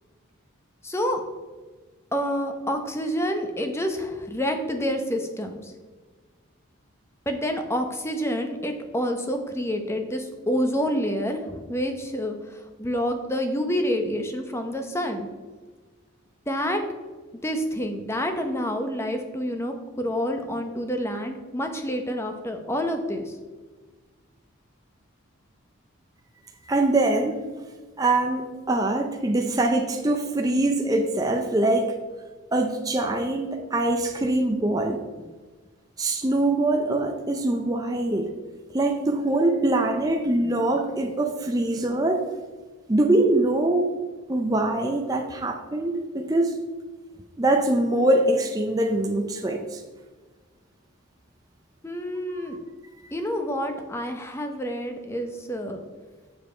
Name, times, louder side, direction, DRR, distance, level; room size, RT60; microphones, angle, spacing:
voice 1, 0.8-1.2 2.1-5.7 7.3-15.3 16.5-16.8 17.4-23.4 51.8-52.6 53.1-55.8, equal, 10° left, 5 dB, 0.8 m, -28 dB
voice 2, 26.7-27.4 28.0-32.0 32.5-35.0 36.0-38.3 38.7-42.2 42.9-43.9 44.3-46.5 47.4-49.8 52.3-52.6, right 2 dB, 15° right, 2 dB, 0.5 m, -23 dB
7.4 x 7.0 x 4.4 m, 1.4 s
head